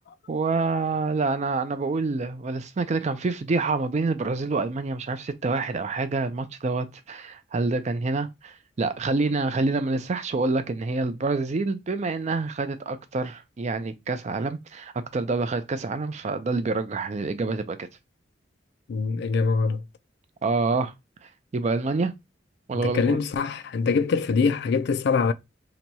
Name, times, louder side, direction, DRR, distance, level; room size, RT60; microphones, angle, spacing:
voice 1, 0.3-17.9 20.4-20.9 21.5-22.1 22.7-23.2, right 3 dB, 40° right, 0.4 m, -27 dB
voice 2, 18.9-19.8 22.7-25.3, left 5 dB, 65° left, 0.3 m, -24 dB
2.9 x 2.3 x 3.9 m
head